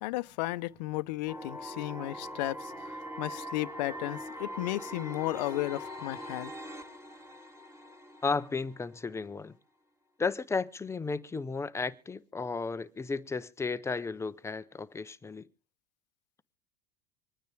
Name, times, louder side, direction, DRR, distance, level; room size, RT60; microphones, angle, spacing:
voice 1, 0.0-2.7 3.2-6.5, left 18 dB, 80° left, 0.8 m, -34 dB
sound 1, 1.3-9.2, equal, 15° right, 2.7 m, -42 dB
voice 2, 8.2-9.5 10.2-15.5, left 4 dB, 15° left, 0.7 m, -34 dB
25.5 x 9.5 x 3.4 m
supercardioid pair, 120°, 21 cm